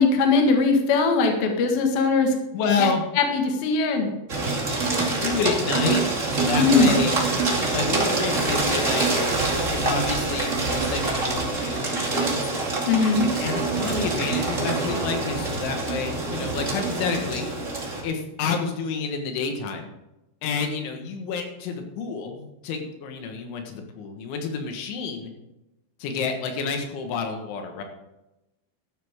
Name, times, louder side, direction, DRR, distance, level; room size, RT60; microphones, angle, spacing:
voice 1, 0.0-2.3 2.8-2.9 3.2-4.1 6.6-6.9 12.9-13.3, left 4 dB, 60° left, 3 dB, 3.3 m, -20 dB
voice 2, 2.5-3.0 5.0-7.1 7.7-9.1 9.7-12.5 13.4-17.5 18.0-19.9 20.4-25.3 26.0-27.8, left 5 dB, 85° left, 4 dB, 3.9 m, -29 dB
sound 1, 4.3-18.0, right 3 dB, 25° right, 1.6 m, -25 dB
13.0 x 12.0 x 3.6 m, 0.95 s
omnidirectional pair, 5.3 m